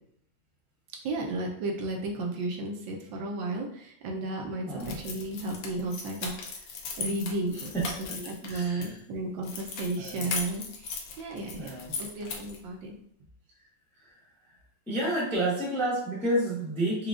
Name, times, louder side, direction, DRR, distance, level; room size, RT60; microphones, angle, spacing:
voice 1, 1.0-6.3 7.0-12.9, right 2 dB, 75° right, 0 dB, 1.4 m, -34 dB
voice 2, 4.7-5.0 7.5-7.8 8.5-9.0 10.0-10.3 11.6-12.0 14.9-17.1, right 1 dB, 5° left, -6 dB, 0.4 m, -30 dB
sound 1, 4.8-8.9 9.4-12.6, left 5 dB, 70° left, 1.3 m, -38 dB
4.8 x 2.3 x 2.4 m, 0.67 s
omnidirectional pair, 2.2 m